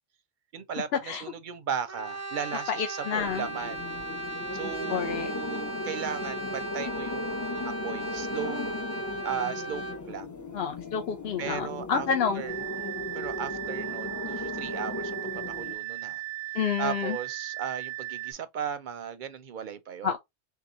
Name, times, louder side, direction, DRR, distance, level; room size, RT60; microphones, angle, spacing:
voice 1, 0.5-3.9 4.5-7.4 7.6-8.7 9.2-10.4 11.4-12.1 12.4-12.5 13.1-16.2 16.8-20.1, right 8 dB, 60° right, 0.6 m, -36 dB
Brass instrument, 1.9-10.1, right 1 dB, 20° right, 0.5 m, -37 dB
voice 2, 2.8-3.5 4.9-5.3 10.5-12.4 16.5-17.2 20.0-20.2, left 7 dB, 70° left, 0.8 m, -29 dB
sound 1, 3.1-15.7, left 2 dB, 30° left, 0.3 m, -37 dB
sound 2, 12.5-18.3, right 16 dB, 90° right, 0.9 m, -37 dB
3.5 x 2.8 x 2.4 m
omnidirectional pair, 1.1 m